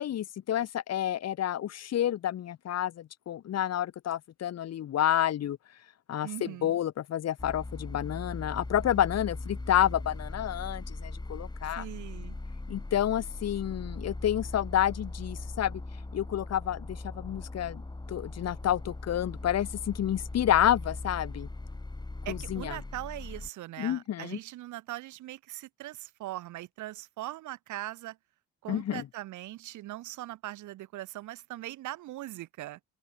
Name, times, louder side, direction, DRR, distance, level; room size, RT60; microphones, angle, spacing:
voice 1, 0.0-5.6 6.1-11.8 12.7-15.8 16.1-17.8 18.1-21.5 22.3-22.8 23.8-24.4 28.7-29.0, left 11 dB, 60° left, 2.8 m, -29 dB
voice 2, 6.2-6.8 11.8-12.4 22.2-28.2 28.6-32.8, right 16 dB, 80° right, 7.2 m, -40 dB
sound 1, 7.4-23.5, left 2 dB, 15° left, 5.8 m, -40 dB
open air
cardioid pair, 95°, 30 cm